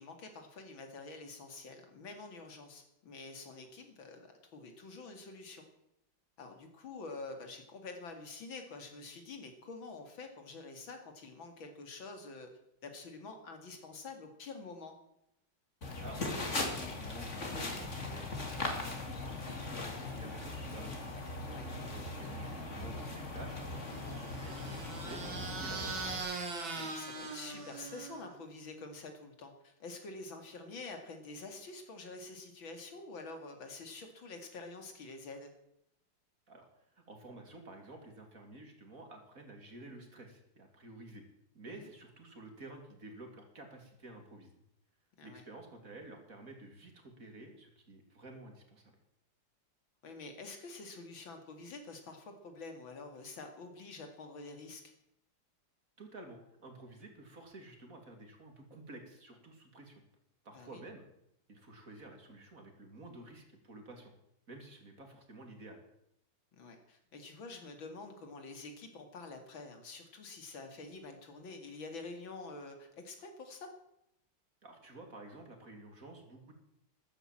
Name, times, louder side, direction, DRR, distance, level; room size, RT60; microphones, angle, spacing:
voice 1, 0.0-5.7 6.4-12.5 12.8-15.0 21.4-21.7 26.7-35.5 41.7-41.9 45.2-45.4 50.0-54.8 60.5-60.8 66.5-73.7, left 3 dB, 85° left, 5 dB, 3.1 m, -47 dB
sound 1, 15.8-26.2, left 2 dB, 40° left, 2.7 m, -39 dB
voice 2, 16.0-20.9 21.5-26.0 36.5-36.6 36.9-41.2 41.5-44.5 45.2-48.8 56.0-59.9 60.4-61.1 61.5-64.1 64.5-65.8 74.6-76.5, right 2 dB, 45° right, 4 dB, 3.0 m, -51 dB
sound 2, 23.8-28.4, right 3 dB, 80° right, 3.2 m, -41 dB
13.5 x 12.0 x 7.6 m, 0.78 s
omnidirectional pair, 2.1 m